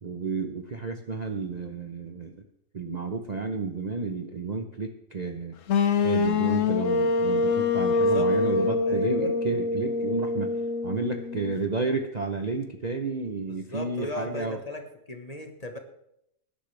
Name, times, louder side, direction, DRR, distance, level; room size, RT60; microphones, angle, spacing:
voice 1, 0.0-2.4 2.7-5.5 6.0-10.5 10.8-14.6, right 4 dB, 40° right, 5 dB, 0.7 m, -31 dB
sound 1, 5.7-11.6, left 4 dB, 65° left, 1.1 m, -25 dB
voice 2, 8.0-8.5 8.9-9.3 13.5-14.8 15.1-15.8, left 1 dB, 30° left, 5 dB, 1.3 m, -37 dB
19.5 x 10.5 x 3.3 m, 0.77 s
omnidirectional pair, 1.5 m